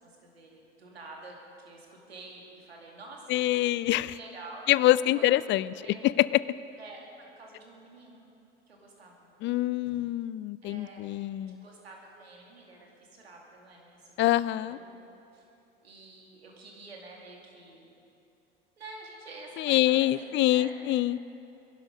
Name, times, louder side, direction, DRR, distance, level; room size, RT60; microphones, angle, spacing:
voice 1, 0.0-3.4 4.1-4.7 5.1-6.0 6.8-8.2 8.7-9.3 10.6-11.1 11.5-15.5 15.8-17.9 18.8-20.8, right 2 dB, 85° right, -1 dB, 2.5 m, -48 dB
voice 2, 3.3-4.2 4.7-5.7 6.0-6.4 9.4-11.6 14.2-14.8 19.6-21.2, left 15 dB, 40° left, 19 dB, 0.4 m, -25 dB
21.0 x 11.5 x 5.2 m, 2.7 s
hypercardioid pair, 70°, 30 cm